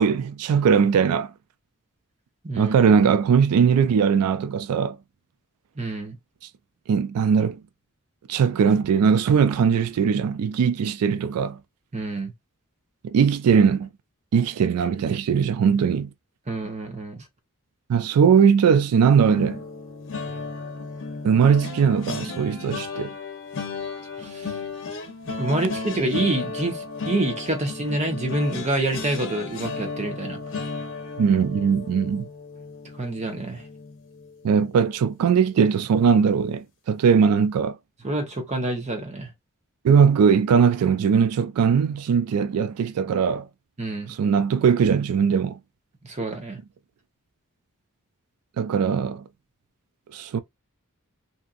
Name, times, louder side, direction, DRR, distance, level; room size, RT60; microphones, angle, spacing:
voice 1, 0.0-1.3 2.6-5.0 6.9-7.6 8.3-11.6 13.0-13.9 14.3-16.1 17.9-19.6 21.2-23.1 31.2-32.3 34.4-37.8 39.8-43.5 44.1-45.6 48.6-49.2 50.1-50.4, right 6 dB, 85° right, 0.3 m, -20 dB
voice 2, 2.4-2.7 5.8-6.2 11.9-12.3 16.5-17.2 24.2-24.6 25.4-30.4 33.0-33.6 38.0-39.3 43.8-44.1 46.0-46.6, right 2 dB, 30° right, 0.8 m, -27 dB
sound 1, 19.2-34.4 34.8-35.1 35.3-35.6, left 4 dB, 60° left, 0.8 m, -34 dB
2.8 x 2.5 x 2.4 m
head